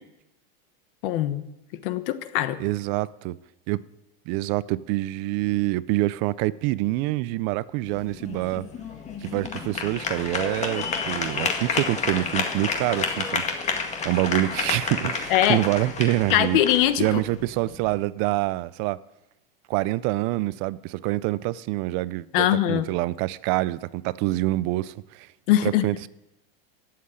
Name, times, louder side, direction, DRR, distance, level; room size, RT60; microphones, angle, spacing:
voice 1, 1.0-1.5 1.8-2.6 15.3-15.6 16.3-17.2 22.3-22.9 25.5-25.9, left 12 dB, 60° left, 1.3 m, -22 dB
voice 2, 2.6-3.4 3.7-3.8 4.3-8.7 9.2-13.7 14.0-16.6 17.0-19.0 19.7-25.3 25.6-26.1, right 18 dB, 40° right, 0.5 m, -26 dB
sound 1, 7.9-17.9, left 5 dB, 20° left, 2.0 m, -30 dB
15.0 x 7.6 x 9.5 m
supercardioid pair, 155°, 30 cm